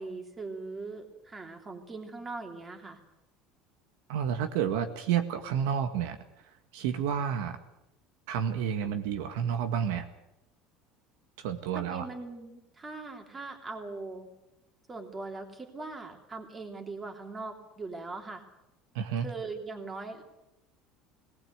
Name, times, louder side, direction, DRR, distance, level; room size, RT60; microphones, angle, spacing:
voice 1, 0.0-3.0 11.7-14.3 14.9-18.4 19.2-20.2, right 3 dB, 20° right, 4 dB, 3.0 m, -40 dB
voice 2, 4.1-6.2 6.7-7.6 8.3-10.1 11.4-12.1 19.0-19.3, right 8 dB, 85° right, 7 dB, 1.8 m, -30 dB
19.0 x 19.0 x 8.2 m, 0.90 s
cardioid pair, 140°, 0 cm